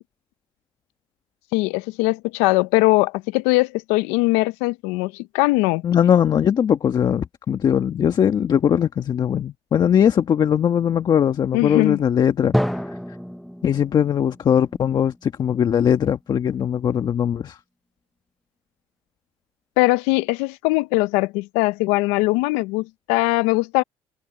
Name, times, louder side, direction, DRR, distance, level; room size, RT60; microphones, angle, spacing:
voice 1, 1.5-5.8 11.5-12.0 19.8-23.8, left 22 dB, 85° left, 0.6 m, -20 dB
voice 2, 5.8-12.5 13.6-17.6, left 8 dB, 40° left, 1.5 m, -20 dB
Drum, 12.5-16.2, equal, ahead, 0.5 m, -29 dB
cardioid pair, 110°, 11 cm